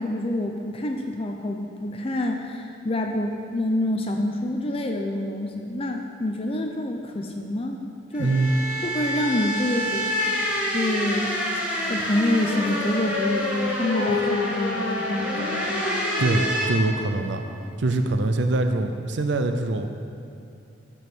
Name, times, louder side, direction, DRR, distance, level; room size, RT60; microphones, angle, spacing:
voice 1, 0.0-7.8 8.1-8.3 8.8-11.3 11.9-15.8, left 1 dB, 30° left, 3 dB, 0.6 m, -27 dB
sound 1, 8.1-16.7, equal, 5° right, 1.6 m, -28 dB
voice 2, 8.2-8.5 16.2-17.4 17.8-19.9, right 2 dB, 70° right, 7 dB, 0.6 m, -23 dB
Dog, 12.1-17.8, left 3 dB, 80° left, 1.4 m, -31 dB
9.1 x 7.2 x 6.1 m, 2.6 s
head